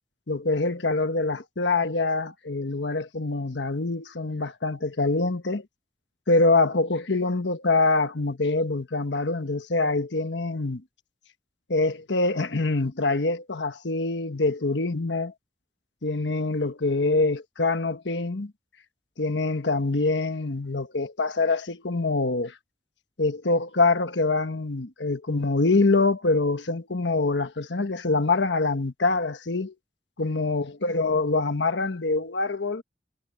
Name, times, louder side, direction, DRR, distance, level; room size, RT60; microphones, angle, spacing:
voice 1, 0.3-5.6 6.3-10.8 11.7-15.3 16.0-18.5 19.2-22.5 23.2-29.7 30.2-32.8, left 3 dB, 90° left, 1.3 m, -25 dB
head